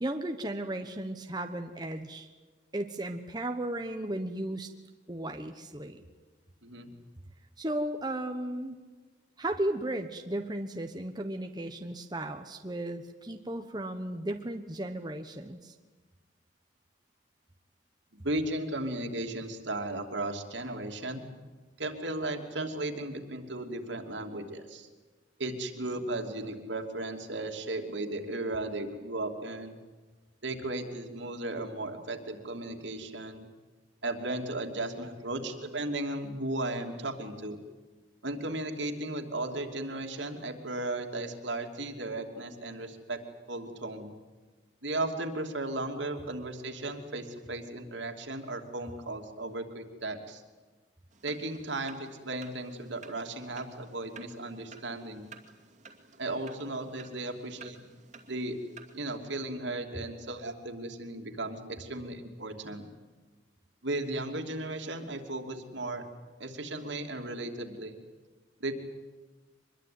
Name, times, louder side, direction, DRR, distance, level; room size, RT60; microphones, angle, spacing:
voice 1, 0.0-2.3 2.7-4.7 5.1-6.1 7.6-8.8 9.4-15.7, right 1 dB, 20° right, 5 dB, 1.1 m, -35 dB
voice 2, 6.6-6.9 18.1-21.2 21.8-24.9 25.4-29.8 30.4-33.4 34.0-37.6 38.2-43.2 43.5-44.1 44.8-50.4 51.2-55.3 56.2-57.8 58.3-58.6 58.9-62.8 63.8-66.0 66.4-67.9 68.6-68.8, right 2 dB, 70° right, 4 dB, 2.9 m, -35 dB
sound 1, 51.1-59.2, right 5 dB, 40° right, 2.4 m, -54 dB
24.5 x 21.5 x 9.5 m, 1.3 s
head